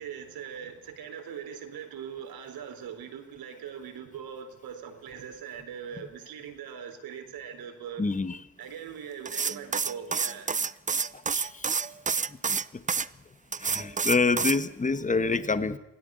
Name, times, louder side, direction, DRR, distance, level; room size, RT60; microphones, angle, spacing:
voice 1, 0.0-8.0 8.6-10.5, right 8 dB, 60° right, 6 dB, 4.2 m, -41 dB
voice 2, 8.0-8.4 11.3-11.7 12.5-12.6 13.6-15.8, left 4 dB, 20° left, 12 dB, 1.5 m, -27 dB
sound 1, 9.3-13.1 13.5-14.6, right 5 dB, 20° right, 0.7 m, -28 dB
27.5 x 17.0 x 6.4 m, 0.93 s
hypercardioid pair, 60°, 40 cm